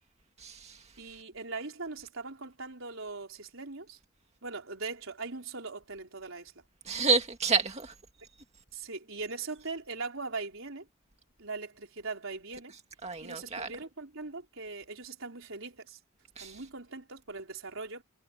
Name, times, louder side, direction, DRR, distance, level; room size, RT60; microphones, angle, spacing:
voice 1, 0.4-0.7 6.9-7.9 13.0-13.7 16.4-16.5, right 4 dB, 35° right, 2.0 m, -29 dB
voice 2, 1.0-4.0 4.4-6.6 8.7-10.9 11.4-12.8 13.2-16.0 16.4-18.0, right 3 dB, 80° right, 4.2 m, -40 dB
head